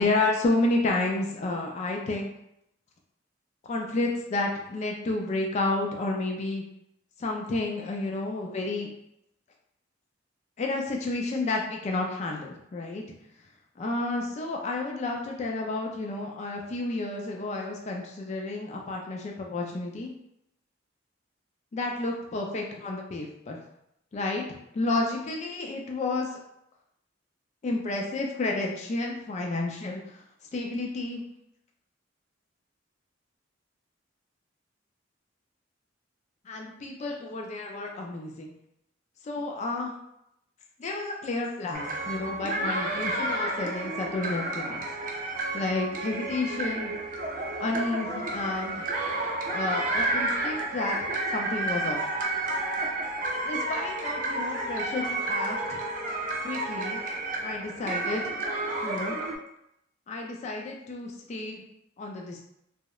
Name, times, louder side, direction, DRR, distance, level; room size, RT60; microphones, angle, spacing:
voice 1, 0.0-2.3 3.7-6.6 7.2-8.9 10.6-13.0 13.8-20.1 21.7-23.6 24.1-26.3 27.6-30.0 30.5-31.2 36.5-38.5 39.2-39.9 40.8-44.8 45.5-46.9 47.6-48.9 49.5-52.0 53.4-55.8 56.4-57.0 57.4-58.2 58.8-59.2 60.1-61.6 62.0-62.4, left 2 dB, 35° left, 1 dB, 0.3 m, -31 dB
sound 1, 41.7-59.3, right 2 dB, 45° right, 0.4 m, -31 dB
2.8 x 2.0 x 2.3 m, 0.78 s
head